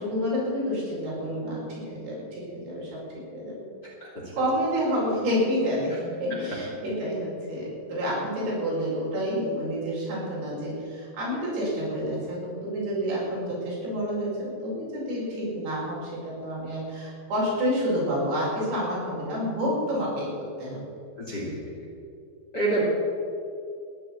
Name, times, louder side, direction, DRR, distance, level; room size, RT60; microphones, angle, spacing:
voice 1, 0.0-3.7 4.4-20.8, equal, 65° right, -5 dB, 7.1 m, -29 dB
voice 2, 4.0-4.3 21.2-21.7 22.5-22.8, right 2 dB, 30° left, -3 dB, 2.5 m, -28 dB
13.5 x 11.0 x 8.4 m, 2.5 s
omnidirectional pair, 4.9 m